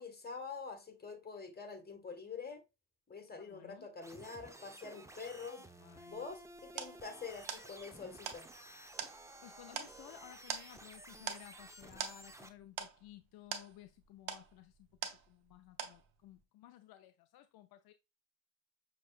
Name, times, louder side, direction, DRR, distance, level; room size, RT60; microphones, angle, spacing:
voice 1, 0.0-2.6 3.1-5.6 6.1-8.5, left 5 dB, 25° left, 1.6 m, -46 dB
voice 2, 3.4-3.9 5.1-6.3 9.2-17.9, left 13 dB, 70° left, 0.5 m, -57 dB
sound 1, 4.0-12.5, right 1 dB, 10° right, 0.7 m, -54 dB
sound 2, 6.1-15.5 15.8-16.4, right 8 dB, 75° right, 0.8 m, -45 dB
6.2 x 3.1 x 2.4 m
supercardioid pair, 65°, 39 cm